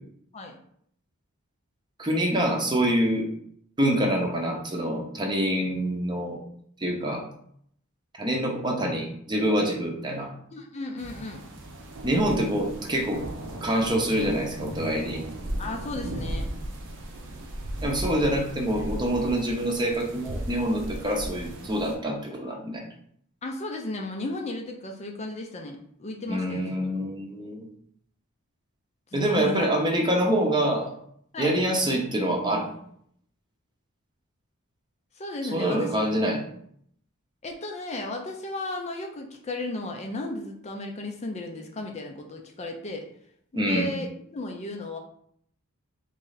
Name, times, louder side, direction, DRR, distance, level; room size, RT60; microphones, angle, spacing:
voice 1, 2.0-3.3 3.8-6.4 6.8-7.2 8.2-10.3 12.0-13.2 13.6-15.2 17.8-22.8 26.3-27.7 29.1-30.9 31.4-32.7 35.5-36.4 43.5-43.9, right 1 dB, 20° right, 1 dB, 0.8 m, -26 dB
voice 2, 10.5-11.4 15.6-16.5 23.4-26.8 29.1-29.7 31.3-31.6 35.2-36.0 37.4-43.1 43.5-45.0, left 2 dB, 30° left, 2 dB, 0.5 m, -34 dB
sound 1, 11.0-21.9, right 1 dB, 60° right, 0.8 m, -36 dB
3.8 x 3.2 x 4.0 m, 0.66 s
head